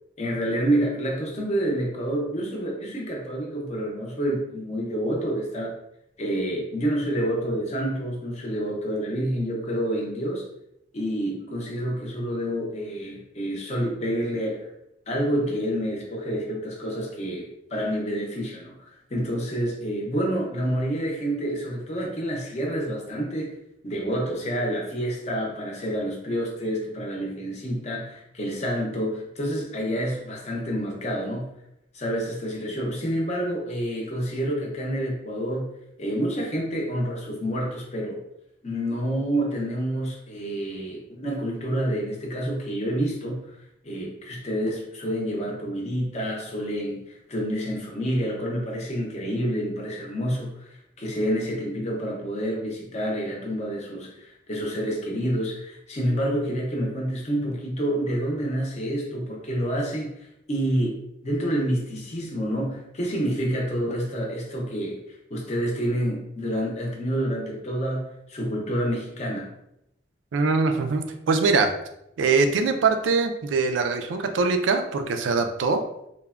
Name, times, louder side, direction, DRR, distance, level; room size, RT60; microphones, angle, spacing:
voice 1, 0.2-5.8 6.2-10.4 10.9-14.7 15.1-23.6 23.8-31.5 31.9-35.7 36.0-38.2 38.6-43.4 43.8-60.2 60.5-69.5, equal, 35° left, -1 dB, 0.6 m, -28 dB
voice 2, 70.3-71.7 72.2-75.8, right 4 dB, 85° right, 6 dB, 0.3 m, -22 dB
3.2 x 2.1 x 2.3 m, 0.81 s
head